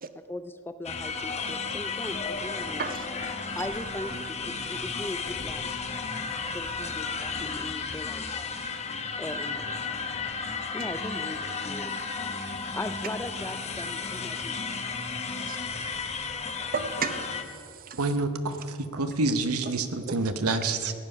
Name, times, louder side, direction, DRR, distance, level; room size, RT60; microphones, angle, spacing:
voice 1, 0.1-2.9 3.6-5.6 6.5-8.3 9.2-9.8 10.7-12.1 12.7-14.6, left 1 dB, 10° left, 0.4 m, -39 dB
sound 1, 0.8-17.4, left 4 dB, 30° left, 0.9 m, -33 dB
voice 2, 2.8-3.3 3.6-3.7 10.8-10.9 15.5-15.6 16.7-18.0, right 5 dB, 40° right, 0.8 m, -34 dB
voice 3, 18.0-20.9, right 3 dB, 80° right, 0.9 m, -27 dB
15.5 x 9.9 x 5.5 m
head